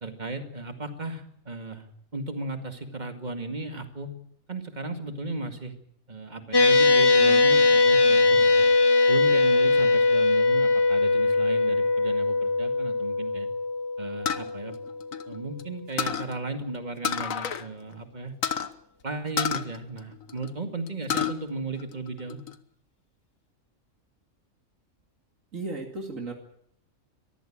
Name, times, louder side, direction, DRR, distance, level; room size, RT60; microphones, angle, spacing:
voice 1, 0.0-1.9 2.1-4.1 4.5-5.8 6.1-8.7 9.1-13.5 14.0-14.7 15.3-18.4 19.0-22.4, right 3 dB, 35° right, 6 dB, 2.2 m, -35 dB
sound 1, 6.5-15.2, left 3 dB, 25° left, 0.7 m, -21 dB
sound 2, 14.3-15.6 16.0-16.3 17.0-17.7 17.9-18.0 18.4-18.7 19.4-20.5 20.9-21.4 21.8-22.5, left 8 dB, 80° left, 1.5 m, -29 dB
voice 2, 25.5-26.3, right 3 dB, 75° right, 2 dB, 2.9 m, -34 dB
22.5 x 15.0 x 8.8 m, 0.72 s
omnidirectional pair, 1.4 m